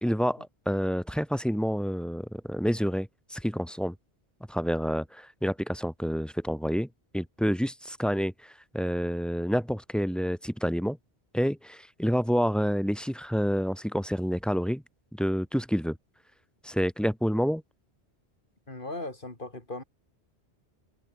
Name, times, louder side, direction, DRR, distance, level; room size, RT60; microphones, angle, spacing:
voice 1, 0.0-3.9 4.5-6.9 7.1-11.0 11.3-14.8 15.1-16.0 16.6-17.6, equal, ahead, 2.0 m, -28 dB
voice 2, 18.7-19.8, left 2 dB, 50° left, 4.2 m, -38 dB
omnidirectional pair, 1.1 m